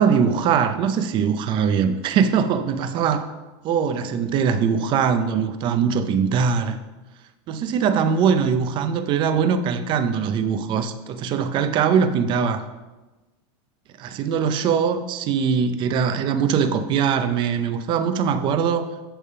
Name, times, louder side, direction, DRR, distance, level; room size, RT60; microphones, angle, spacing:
voice 1, 0.0-3.2 3.6-6.8 7.5-12.6 14.0-18.9, right 6 dB, 35° right, 9 dB, 0.6 m, -21 dB
10.0 x 3.5 x 5.5 m, 1.1 s
supercardioid pair, 150°, 14 cm